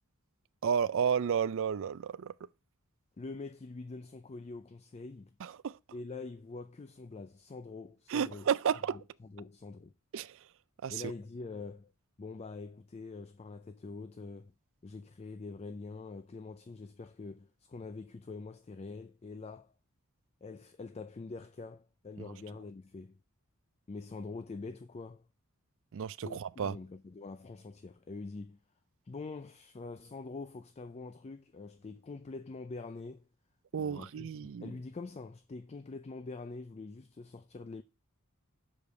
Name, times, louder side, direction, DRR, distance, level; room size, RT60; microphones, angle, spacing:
voice 1, 0.6-2.3 5.4-5.8 8.1-9.0 10.1-10.4 10.8-11.0 25.9-26.8 33.7-34.7, right 7 dB, 60° right, 0.4 m, -32 dB
voice 2, 3.2-5.3 5.9-8.5 8.9-9.9 10.9-11.9 12.2-14.5 14.8-19.7 20.4-23.2 23.9-25.2 26.2-28.6 29.1-33.2 33.8-37.8, left 3 dB, 30° left, 0.4 m, -45 dB
6.4 x 5.3 x 6.8 m
head